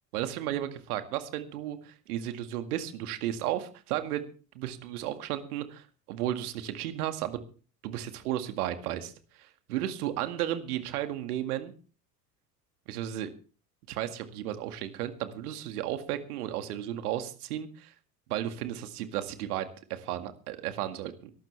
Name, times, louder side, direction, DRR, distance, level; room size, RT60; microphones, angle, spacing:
voice 1, 0.1-4.3 4.5-7.4 7.8-11.7 12.9-13.3 13.9-17.9 18.3-21.3, right 12 dB, 70° right, 9 dB, 2.1 m, -34 dB
22.0 x 12.5 x 3.4 m, 0.38 s
hypercardioid pair, 75°, 47 cm